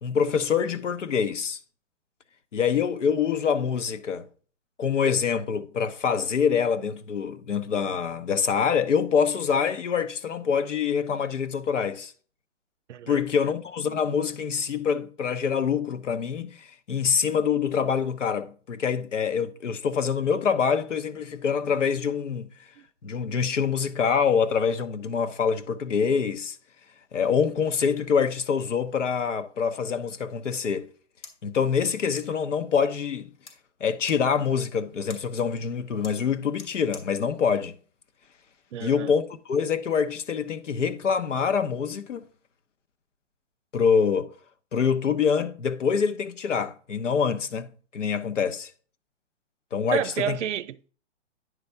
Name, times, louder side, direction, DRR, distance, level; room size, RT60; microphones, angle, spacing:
voice 1, 0.0-1.6 2.5-4.3 4.8-12.1 13.1-22.5 23.0-26.6 27.1-30.9 31.4-33.3 33.8-37.8 38.8-42.2 43.7-44.3 44.7-48.7 49.7-50.4, left 6 dB, 90° left, 1.0 m, -25 dB
voice 2, 12.9-13.3 22.8-22.9 38.7-39.1 49.9-50.9, right 10 dB, 75° right, 0.6 m, -30 dB
sound 1, 30.8-38.8, left 4 dB, 75° left, 2.7 m, -52 dB
9.5 x 3.5 x 5.6 m
hypercardioid pair, 150°, 36 cm